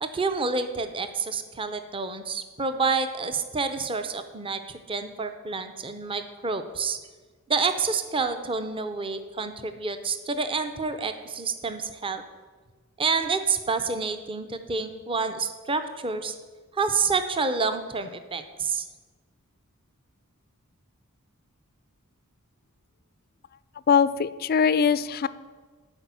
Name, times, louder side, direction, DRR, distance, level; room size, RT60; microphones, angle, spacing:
voice 1, 0.0-7.0 7.5-12.2 13.0-16.4 16.7-18.9, right 4 dB, 25° right, 9 dB, 0.6 m, -28 dB
voice 2, 23.9-25.3, left 6 dB, 45° left, 16 dB, 0.3 m, -21 dB
10.5 x 4.9 x 8.2 m, 1.4 s
head